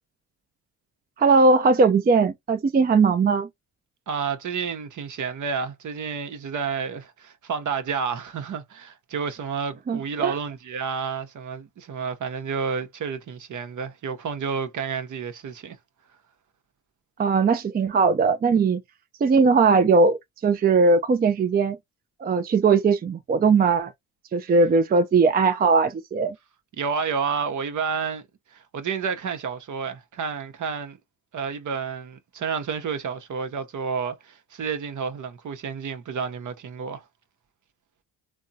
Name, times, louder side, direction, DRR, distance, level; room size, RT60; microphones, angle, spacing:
voice 1, 1.2-3.5 9.9-10.3 17.2-18.8 19.2-21.8 22.2-23.9 24.3-26.4, right 4 dB, 25° right, 0.4 m, -19 dB
voice 2, 4.1-15.8 26.8-28.2 28.5-31.0 31.3-37.0, right 6 dB, 55° right, 0.8 m, -30 dB
3.5 x 2.0 x 2.6 m
cardioid pair, 80°, 37 cm